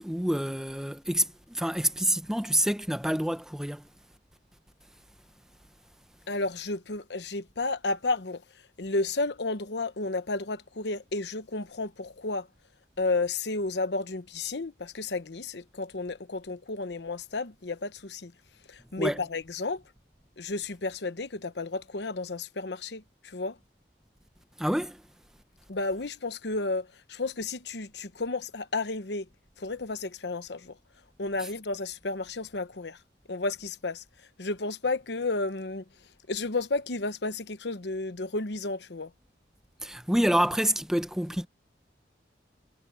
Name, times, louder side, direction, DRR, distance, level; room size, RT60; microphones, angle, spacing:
voice 1, 0.0-3.9 19.0-19.2 24.6-25.0 39.8-41.5, right 1 dB, 5° right, 0.6 m, -27 dB
voice 2, 6.3-8.4 8.8-12.5 13.0-18.3 18.7-19.8 20.4-23.6 25.7-29.3 29.6-30.8 31.2-33.0 33.3-34.0 34.4-35.8 36.3-39.1, left 3 dB, 75° left, 1.0 m, -32 dB
head